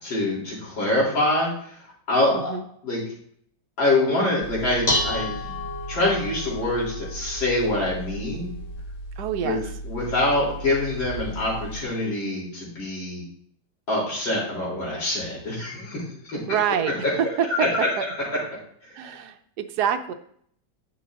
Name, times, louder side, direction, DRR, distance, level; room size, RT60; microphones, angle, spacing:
voice 1, 0.0-1.5 2.1-2.5 2.8-3.0 3.8-5.6 5.9-8.5 9.4-13.2 13.9-16.4 16.7-17.1 17.5-18.5 18.8-19.2, left 2 dB, 80° left, -5 dB, 4.0 m, -25 dB
Dishes pots and pans, 4.4-11.8, left 1 dB, 65° left, 0.4 m, -32 dB
voice 2, 9.2-9.6 16.4-16.9 17.2-17.7 18.0-18.1 18.9-20.1, right 8 dB, 70° right, 8 dB, 1.1 m, -26 dB
10.0 x 6.7 x 2.5 m, 0.64 s
omnidirectional pair, 2.0 m